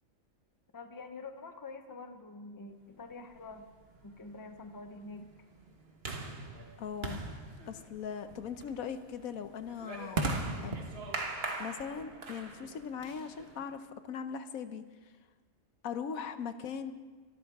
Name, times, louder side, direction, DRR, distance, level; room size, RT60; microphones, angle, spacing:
voice 1, 0.7-3.7 4.0-5.3, left 3 dB, 15° left, 7 dB, 0.8 m, -46 dB
sound 1, 3.3-13.7, right 3 dB, 45° right, 1.6 m, -40 dB
voice 2, 6.8-7.2 7.7-10.2 10.6-10.8 11.6-14.8 15.8-16.9, left 7 dB, 80° left, 10 dB, 1.2 m, -39 dB
24.5 x 13.5 x 3.6 m, 1.3 s
omnidirectional pair, 1.5 m